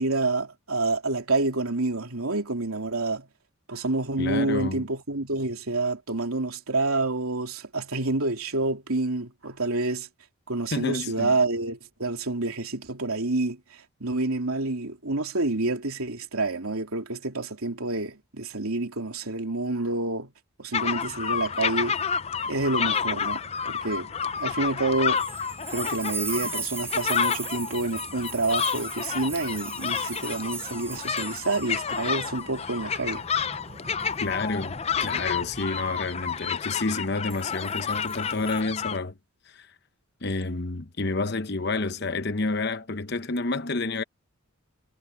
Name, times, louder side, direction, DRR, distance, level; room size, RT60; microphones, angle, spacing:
voice 1, 0.0-3.3 3.7-10.1 10.5-20.3 20.6-22.0 22.5-24.1 24.4-25.2 25.7-33.2, right 2 dB, 85° right, 3.1 m, -28 dB
voice 2, 4.2-4.9 10.7-11.3 34.2-39.1 39.5-39.7 40.2-44.0, left 3 dB, 50° left, 1.0 m, -29 dB
sound 1, 20.7-39.0, left 6 dB, 30° left, 0.5 m, -30 dB
sound 2, 25.2-32.1 32.4-32.6 34.0-34.3 37.3-38.6, right 4 dB, 10° right, 4.1 m, -38 dB
sound 3, 30.8-36.7, equal, 30° right, 7.6 m, -48 dB
head